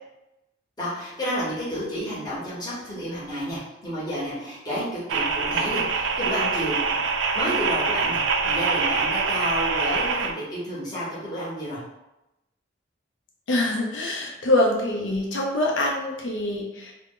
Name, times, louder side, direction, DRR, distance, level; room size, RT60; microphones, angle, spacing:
voice 1, 0.8-7.0 7.3-11.8, equal, 20° left, -9 dB, 1.0 m, -30 dB
sound 1, 5.1-10.3, right 4 dB, 85° right, 0.3 m, -24 dB
voice 2, 13.5-16.9, left 1 dB, 80° left, -1 dB, 0.5 m, -24 dB
2.4 x 2.1 x 3.6 m, 0.92 s
head